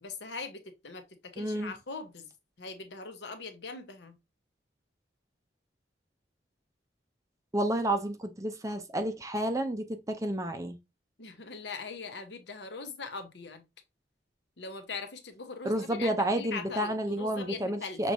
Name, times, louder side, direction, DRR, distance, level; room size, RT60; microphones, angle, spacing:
voice 1, 0.0-2.3 2.6-4.1 11.2-13.6 14.6-18.1, left 4 dB, 75° left, 1.0 m, -41 dB
voice 2, 1.4-1.7 7.5-10.8 15.6-18.1, right 1 dB, 20° right, 0.5 m, -30 dB
6.2 x 3.1 x 2.7 m
head